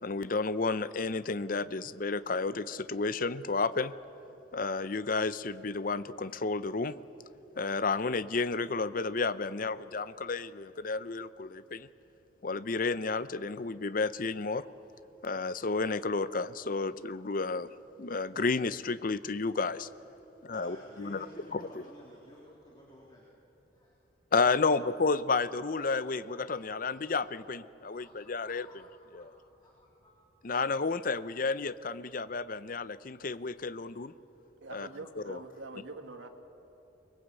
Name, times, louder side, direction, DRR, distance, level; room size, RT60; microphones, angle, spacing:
voice 1, 0.0-3.9 4.5-6.9 7.6-11.9 12.4-14.7 15.2-19.9 20.4-21.3 21.5-21.6 24.3-28.7 29.1-29.3 30.4-34.1 34.7-34.9 35.2-35.4, left 4 dB, 45° left, 15 dB, 0.6 m, -31 dB
voice 2, 20.3-23.3 23.7-23.9 24.6-24.8 25.7-25.8 26.1-26.5 26.8-27.2 27.9-30.1, equal, 20° left, -4 dB, 3.4 m, -53 dB
voice 3, 34.6-36.3, right 3 dB, 80° right, 5 dB, 1.9 m, -44 dB
24.0 x 21.5 x 8.3 m, 3.0 s
head